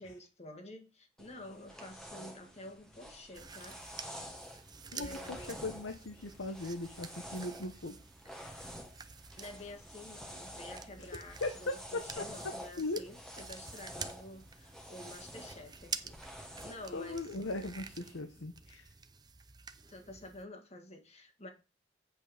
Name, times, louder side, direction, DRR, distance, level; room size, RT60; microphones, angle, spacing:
voice 1, 0.0-3.8 4.9-5.6 9.4-16.1 16.6-17.3 19.9-21.5, left 1 dB, 35° left, 1.7 m, -49 dB
sound 1, 1.2-18.2, equal, 5° left, 1.3 m, -49 dB
sound 2, 3.3-20.4, right 5 dB, 20° right, 0.6 m, -49 dB
voice 2, 4.9-8.0 8.3-8.6 11.0-12.2 12.8-13.0 16.9-18.9, left 2 dB, 85° left, 1.0 m, -39 dB
8.4 x 5.4 x 5.0 m
head